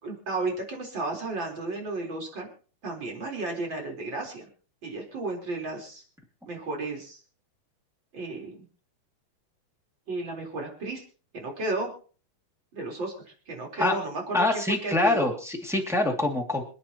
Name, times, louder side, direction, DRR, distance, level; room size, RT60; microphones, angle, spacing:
voice 1, 0.0-2.5 2.8-4.5 4.8-6.0 6.5-7.2 8.1-8.7 10.1-11.0 11.3-11.9 12.7-13.1 13.5-15.3, right 2 dB, 30° right, 1 dB, 4.4 m, -33 dB
voice 2, 14.3-16.6, left 2 dB, ahead, -1 dB, 1.0 m, -25 dB
27.0 x 9.6 x 3.0 m, 0.39 s
omnidirectional pair, 4.4 m